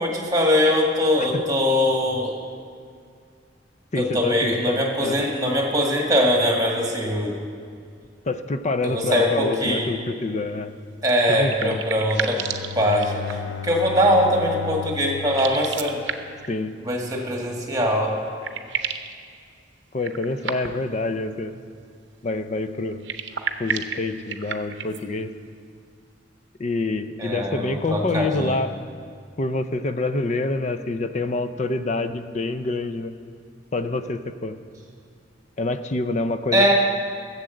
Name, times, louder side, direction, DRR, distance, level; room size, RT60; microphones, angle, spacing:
voice 1, 0.0-2.3 4.0-7.4 8.8-9.9 11.0-12.4 12.7-16.0 16.8-18.2 27.2-28.6 36.5-36.7, equal, 20° right, 0 dB, 1.7 m, -22 dB
voice 2, 3.9-5.2 8.2-10.7 11.3-11.8 16.5-16.8 19.9-21.6 22.2-23.1 23.6-25.4 26.6-28.7 29.4-33.1 33.7-34.6 35.6-36.7, left 2 dB, 40° left, 10 dB, 0.5 m, -26 dB
sound 1, 11.1-13.6 15.2-16.5 17.8-17.9 18.2-19.1 20.0-21.0 22.9-25.0, right 7 dB, 75° right, 0.7 m, -32 dB
Bowed string instrument, 12.2-16.8, left 8 dB, 90° left, 0.3 m, -35 dB
11.5 x 7.4 x 7.8 m, 2.2 s
head